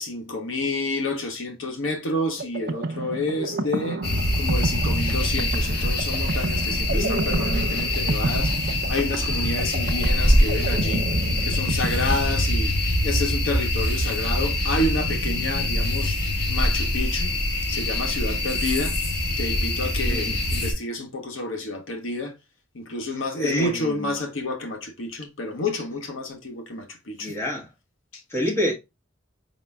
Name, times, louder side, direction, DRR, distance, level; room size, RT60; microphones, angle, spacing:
voice 1, 0.0-4.0 4.4-11.1 11.4-12.7 13.0-16.2 16.5-17.3 17.7-19.0 19.4-22.3 22.7-27.3 28.1-28.2, left 2 dB, 75° left, 0.9 m, -29 dB
sound 1, 2.4-12.9, right 3 dB, 50° right, 0.4 m, -31 dB
sound 2, 4.0-20.7, left 1 dB, 50° left, 1.6 m, -24 dB
voice 2, 6.9-7.5 20.0-20.4 23.1-24.1 27.2-27.7 28.3-28.7, left 1 dB, 10° left, 1.2 m, -28 dB
5.0 x 3.9 x 2.2 m
head